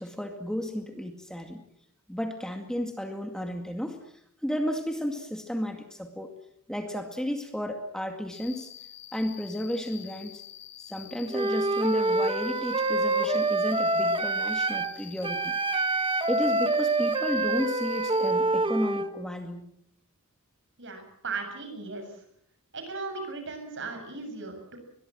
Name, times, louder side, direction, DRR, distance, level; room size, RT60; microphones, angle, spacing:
voice 1, 0.0-1.6 2.1-4.0 4.4-6.3 6.7-8.7 9.1-10.4 10.9-15.5 16.3-19.7, equal, 5° left, 5 dB, 2.2 m, -33 dB
Cricket, 8.3-18.3, left 11 dB, 55° left, 2.1 m, -47 dB
Wind instrument woodwind instrument, 11.3-14.9 15.2-19.1, right 2 dB, 25° right, 1.4 m, -26 dB
voice 2, 20.8-22.2 22.7-24.8, right 4 dB, 60° right, 6 dB, 7.5 m, -37 dB
22.5 x 22.5 x 7.7 m, 0.71 s
head